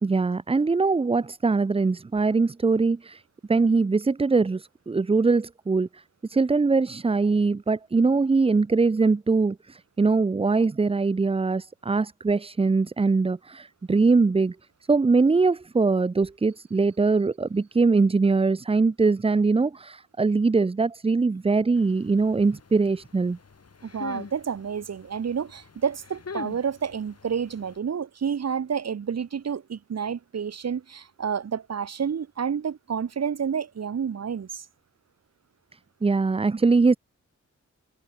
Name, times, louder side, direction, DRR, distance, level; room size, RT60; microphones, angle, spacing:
voice 1, 0.0-3.2 3.5-6.0 6.3-14.6 14.9-23.4 36.0-37.0, right 4 dB, 20° right, 0.5 m, -22 dB
sound 1, 21.7-27.8, left 5 dB, 55° left, 2.6 m, -43 dB
voice 2, 23.8-34.6, right 7 dB, 55° right, 1.0 m, -29 dB
cardioid pair, 65°, 30 cm